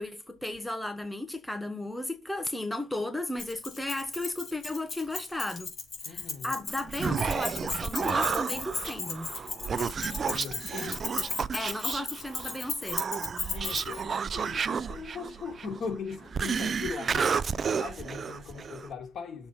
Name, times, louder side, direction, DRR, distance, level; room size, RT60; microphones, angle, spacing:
voice 1, 0.0-5.7 6.0-9.3 11.5-13.0, left 1 dB, 5° left, 1.1 m, -34 dB
Keys jangling, 3.4-14.0, left 4 dB, 45° left, 3.7 m, -36 dB
voice 2, 6.0-6.6 10.2-11.1 13.5-19.5, left 5 dB, 60° left, 2.3 m, -40 dB
Human voice, 6.7-18.9, right 6 dB, 45° right, 0.5 m, -32 dB
7.0 x 4.2 x 5.5 m
cardioid pair, 95°, 0 cm